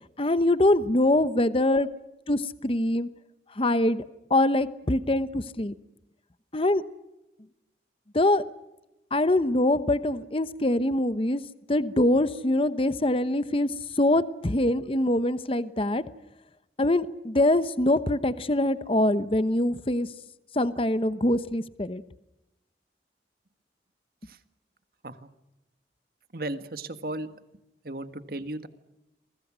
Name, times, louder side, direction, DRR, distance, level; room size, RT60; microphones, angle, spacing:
voice 1, 0.2-1.9 2.3-3.1 3.6-4.0 4.3-5.8 6.5-6.8 8.1-8.4 9.1-11.4 11.7-13.7 14.0-16.0 16.8-20.1 20.6-22.0, left 1 dB, 30° left, 13 dB, 1.0 m, -24 dB
voice 2, 1.2-1.7 14.4-14.5 24.2-24.4 25.0-25.3 26.3-27.3 27.8-28.7, right 1 dB, 55° right, 10 dB, 1.7 m, -36 dB
28.5 x 23.5 x 6.3 m, 0.95 s
head